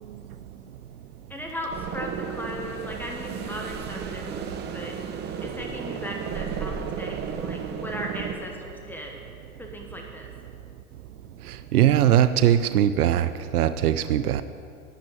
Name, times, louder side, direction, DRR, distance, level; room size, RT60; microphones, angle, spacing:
voice 1, 1.3-9.2 9.6-10.3, equal, 5° left, 1 dB, 1.2 m, -37 dB
sound 1, 1.7-8.3, right 7 dB, 25° right, 0.8 m, -33 dB
voice 2, 11.7-14.4, right 11 dB, 85° right, 13 dB, 0.7 m, -20 dB
11.5 x 6.4 x 8.8 m, 2.3 s
hypercardioid pair, 125°, 44 cm